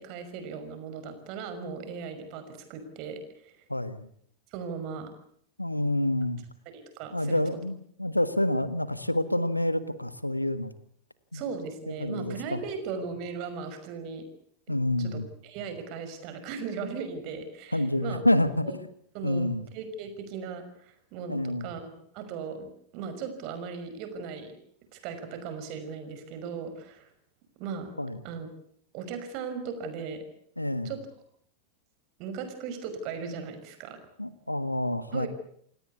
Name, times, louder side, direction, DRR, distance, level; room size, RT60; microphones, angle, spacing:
voice 1, 0.0-3.5 4.5-5.1 6.7-7.4 11.3-14.3 14.7-18.2 18.6-18.8 19.1-24.5 24.9-27.1 27.6-27.9 28.2-28.5 28.9-30.2 30.8-31.0 32.2-34.0 35.1-35.3, right 5 dB, 45° right, 9 dB, 5.6 m, -38 dB
voice 2, 3.7-4.1 5.6-6.4 7.1-10.7 11.3-11.4 11.9-12.6 14.7-15.3 17.7-18.7 19.2-19.6 21.3-21.7 28.0-28.2 30.6-30.9 34.2-35.3, left 1 dB, 85° left, 14 dB, 1.6 m, -28 dB
28.5 x 18.0 x 8.4 m, 0.65 s
figure-of-eight pair, 90°, 0 cm